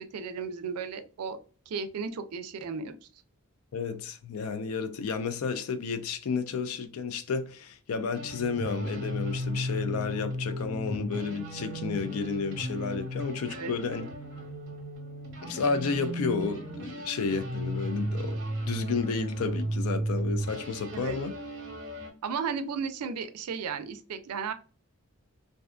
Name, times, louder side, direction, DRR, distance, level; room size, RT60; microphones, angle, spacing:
voice 1, 0.0-1.4 1.7-3.1 13.5-13.7 20.9-21.2 22.2-24.5, right 5 dB, 90° right, 0.4 m, -34 dB
voice 2, 3.7-14.1 15.4-18.4 18.7-21.3, left 5 dB, 75° left, 0.4 m, -31 dB
sound 1, 8.1-22.1, right 1 dB, 55° right, 0.8 m, -35 dB
2.6 x 2.4 x 2.3 m
head